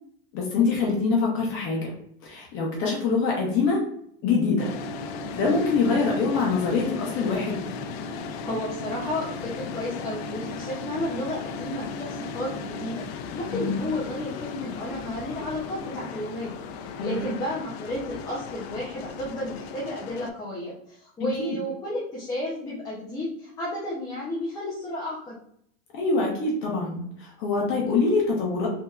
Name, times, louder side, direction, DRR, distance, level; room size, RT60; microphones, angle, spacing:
voice 1, 0.3-1.9 2.2-3.8 4.2-4.7 5.3-7.6 13.5-13.8 17.0-17.3 21.4-21.6 25.9-28.7, left 4 dB, 40° left, -2 dB, 0.8 m, -24 dB
sound 1, 4.6-20.3, left 4 dB, 80° left, 0.5 m, -36 dB
voice 2, 8.4-13.0 13.4-25.4, left 1 dB, 10° left, -6 dB, 0.5 m, -32 dB
3.3 x 2.8 x 2.3 m, 0.68 s
supercardioid pair, 155°, 31 cm